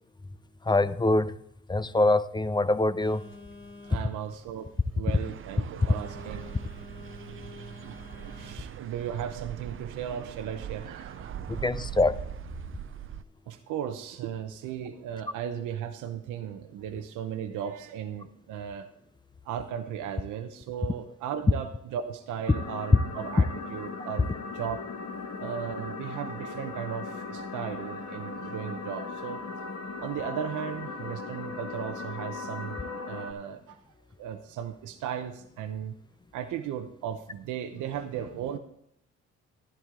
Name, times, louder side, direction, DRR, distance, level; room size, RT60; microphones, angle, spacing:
voice 1, 0.6-1.4 1.7-3.2 11.5-12.2, left 2 dB, 15° left, 15 dB, 0.5 m, -24 dB
Telephone, 3.0-8.5, left 3 dB, 40° left, 2.5 m, -48 dB
voice 2, 3.8-6.5 7.8-11.3 13.5-18.9 19.4-24.3 24.5-24.8 25.4-29.4 30.0-33.8 34.2-35.9 36.3-38.6, right 9 dB, 85° right, 6 dB, 0.8 m, -36 dB
sound 1, 5.1-13.2, right 9 dB, 45° right, 0.6 m, -41 dB
sound 2, 22.5-33.3, left 4 dB, 60° left, 1.5 m, -38 dB
12.0 x 11.0 x 3.7 m, 0.77 s
cardioid pair, 90°, 30 cm